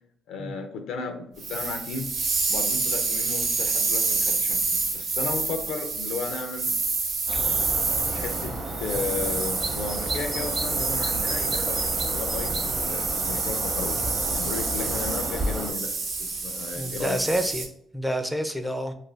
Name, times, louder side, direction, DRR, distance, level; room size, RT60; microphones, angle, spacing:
voice 1, 0.3-2.1 2.5-6.8 8.1-15.9 16.2-17.2, left 4 dB, 85° left, 5 dB, 0.5 m, -34 dB
sound 1, 1.4-17.7, right 4 dB, 70° right, 0.7 m, -28 dB
sound 2, 7.3-15.7, right 1 dB, 35° right, 0.7 m, -32 dB
voice 2, 16.7-17.7 17.9-18.9, equal, 5° right, 7 dB, 0.4 m, -28 dB
2.5 x 2.3 x 3.2 m, 0.69 s
cardioid pair, 90°, 0 cm